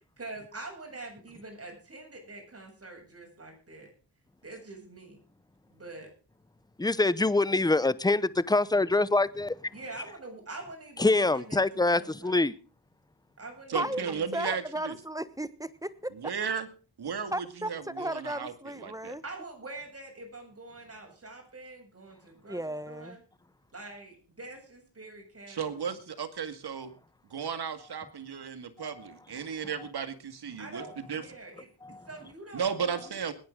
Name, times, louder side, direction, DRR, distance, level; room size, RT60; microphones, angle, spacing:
voice 1, 0.2-3.9 4.4-5.2 5.8-6.1 9.7-12.4 13.4-14.5 19.2-23.2 23.7-26.0 30.6-31.7 32.1-33.2, right 2 dB, 35° right, 7.6 m, -45 dB
voice 2, 6.8-9.6 11.0-12.6 28.8-28.9 31.8-32.0, left 2 dB, 10° left, 0.8 m, -25 dB
voice 3, 13.7-15.0 16.1-16.7 17.0-19.2 25.5-26.9 27.3-31.3 32.5-33.3, right 6 dB, 60° right, 2.1 m, -35 dB
voice 4, 14.3-16.3 17.3-19.2 22.5-23.2, right 1 dB, 10° right, 1.1 m, -35 dB
21.0 x 9.7 x 3.8 m
cardioid pair, 55°, 43 cm